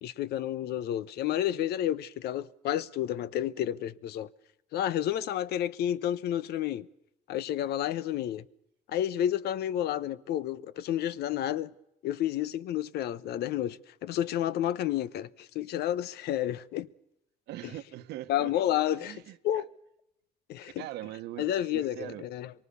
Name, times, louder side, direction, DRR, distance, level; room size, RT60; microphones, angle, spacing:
voice 1, 0.0-4.3 4.7-6.9 7.3-8.4 8.9-11.7 12.0-16.9 18.3-19.7 20.5-20.8 21.4-22.5, left 11 dB, 75° left, 0.9 m, -30 dB
voice 2, 17.5-18.5 18.9-19.6 20.6-22.3, right 14 dB, 85° right, 1.4 m, -42 dB
25.5 x 23.5 x 7.0 m
cardioid pair, 110°, 17 cm